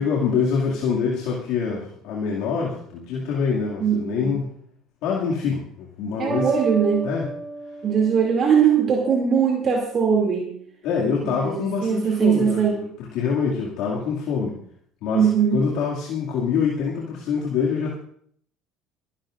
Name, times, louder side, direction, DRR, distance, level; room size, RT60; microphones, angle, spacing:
voice 1, 0.0-4.5 5.0-6.5 7.0-7.3 10.8-14.5 15.0-15.3 15.5-18.0, left 6 dB, 70° left, -4 dB, 2.3 m, -25 dB
voice 2, 3.8-4.3 6.2-7.1 7.8-10.5 11.2-12.8 15.1-15.6, right 7 dB, 45° right, -1 dB, 2.6 m, -20 dB
sound 1, 6.3-9.1, right 3 dB, 20° right, 1.3 m, -33 dB
27.0 x 11.5 x 2.6 m, 0.64 s
supercardioid pair, 100°, 0 cm